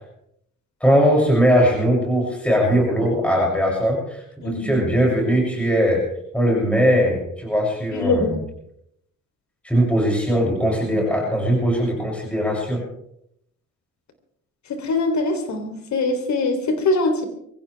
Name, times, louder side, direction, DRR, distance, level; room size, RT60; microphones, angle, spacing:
voice 1, 0.8-6.0 6.3-8.4 9.6-12.8, equal, 5° left, -2 dB, 7.1 m, -20 dB
voice 2, 4.4-4.8 7.9-8.3 14.7-17.2, left 2 dB, 65° left, 6 dB, 3.5 m, -22 dB
23.5 x 15.5 x 3.5 m, 0.75 s
cardioid pair, 90°, 30 cm